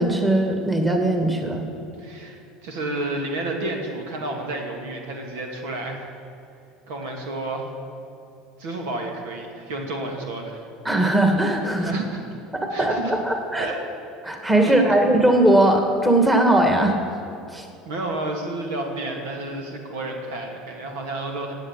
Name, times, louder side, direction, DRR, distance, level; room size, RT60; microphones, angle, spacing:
voice 1, 0.0-1.6 10.8-12.0 12.6-13.7 14.2-17.2 17.5-17.7, right 1 dB, 10° right, 3 dB, 2.2 m, -19 dB
voice 2, 2.0-6.1 6.9-7.7 8.6-10.7 11.8-12.2 12.7-13.2 13.6-13.8 14.6-14.8 17.9-21.6, right 2 dB, 80° right, 2 dB, 2.5 m, -31 dB
17.0 x 8.5 x 8.3 m, 2.6 s
supercardioid pair, 95°, 0 cm